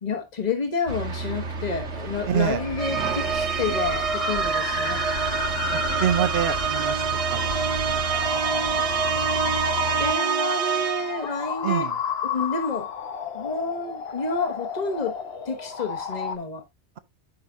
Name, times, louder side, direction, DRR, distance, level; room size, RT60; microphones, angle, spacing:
voice 1, 0.0-5.0 9.6-9.7 10.0-11.9 12.2-12.9 13.3-15.2 15.4-16.6, left 3 dB, 40° left, 1.5 m, -29 dB
sound 1, 0.9-10.1, right 3 dB, 90° right, 1.7 m, -33 dB
voice 2, 2.3-2.6 5.7-7.0 7.3-7.6 7.9-8.2 8.6-8.7 11.6-11.9, right 9 dB, 65° right, 1.0 m, -26 dB
sound 2, 2.5-16.4, left 6 dB, 60° left, 1.1 m, -32 dB
sound 3, 2.8-11.3, right 7 dB, 50° right, 0.4 m, -26 dB
10.5 x 5.8 x 2.6 m
omnidirectional pair, 1.2 m